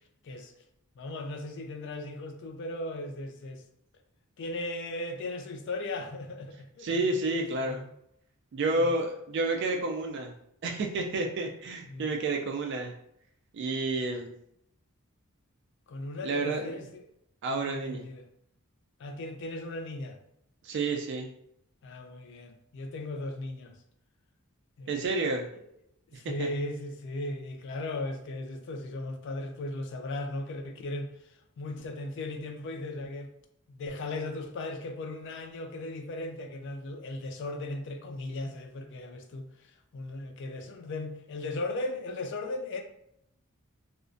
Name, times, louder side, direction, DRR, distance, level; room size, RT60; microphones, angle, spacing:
voice 1, 1.0-3.6 4.4-7.0 7.3-7.9 8.8-8.9 11.9-12.1 14.0-14.2 15.9-17.0 17.5-18.3 19.0-20.2 21.8-23.8 24.8-25.0 26.2-33.3 33.7-42.8, left 2 dB, 55° left, 4 dB, 0.3 m, -37 dB
voice 2, 6.8-7.8 8.5-10.3 10.6-12.9 13.5-14.3 16.2-16.8 17.4-18.0 20.6-21.3 24.9-25.5 26.1-26.5, right 2 dB, 55° right, 3 dB, 0.3 m, -30 dB
2.4 x 2.1 x 2.4 m, 0.75 s
head